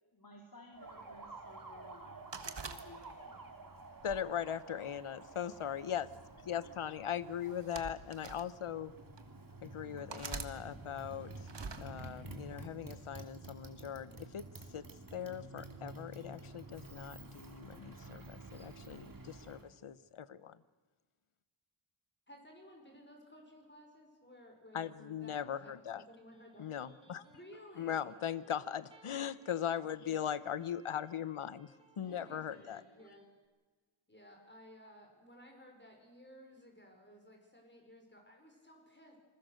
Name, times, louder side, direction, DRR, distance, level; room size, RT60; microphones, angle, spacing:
voice 1, 0.1-3.7 7.2-7.6, left 1 dB, 40° left, 0 dB, 3.6 m, -57 dB
Motorcycle, 0.7-19.7, right 2 dB, 40° right, 2.8 m, -51 dB
sound 1, 2.3-3.4 4.0-5.2 6.1-6.4 7.4-8.5 9.2-9.3 10.1-10.5 11.5-11.9, right 5 dB, 55° right, 1.7 m, -45 dB
voice 2, 4.0-6.1 6.5-8.9 9.6-11.4 11.8-14.4 14.7-14.8 15.1-20.6 24.7-26.0 26.6-27.2 27.8-32.8, left 9 dB, 80° left, 16 dB, 1.0 m, -40 dB
voice 3, 22.3-26.6 27.3-28.1 30.0-30.2 32.1-33.2 34.1-39.2, equal, 20° left, 2 dB, 5.4 m, -57 dB
Electric guitar, 26.1-33.3, right 2 dB, 10° right, 5.8 m, -65 dB
27.0 x 21.5 x 6.6 m, 1.3 s
wide cardioid pair, 85°, 50 cm